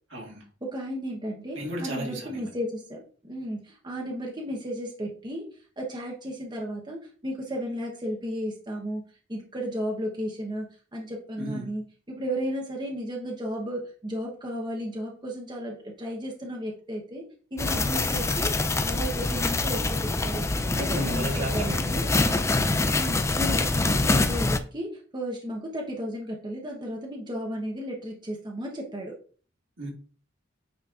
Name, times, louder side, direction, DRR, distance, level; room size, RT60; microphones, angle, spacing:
voice 1, 0.1-0.5 1.5-2.4 11.4-11.7 20.8-22.5 29.8-29.9, right 1 dB, 65° right, -1 dB, 1.9 m, -35 dB
voice 2, 0.6-5.4 5.8-9.0 9.3-17.2 17.5-18.5 18.8-20.4 20.7-22.0 22.9-29.1, equal, 25° right, -1 dB, 1.0 m, -34 dB
sound 1, 17.6-24.6, left 2 dB, 15° left, 0.4 m, -25 dB
8.9 x 4.2 x 2.5 m, 0.42 s
head